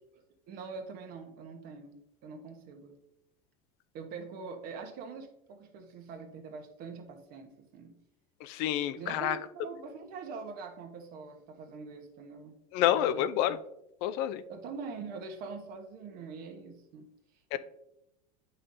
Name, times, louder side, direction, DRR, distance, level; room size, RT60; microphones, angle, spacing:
voice 1, 0.5-3.0 3.9-8.0 8.9-12.6 13.0-13.3 14.5-17.1, right 4 dB, 50° right, 6 dB, 1.1 m, -44 dB
voice 2, 8.4-9.4 12.7-13.6 14.0-14.4 17.5-17.6, left 11 dB, 60° left, 12 dB, 0.5 m, -28 dB
8.4 x 5.5 x 2.6 m, 0.83 s
supercardioid pair, 130°, 19 cm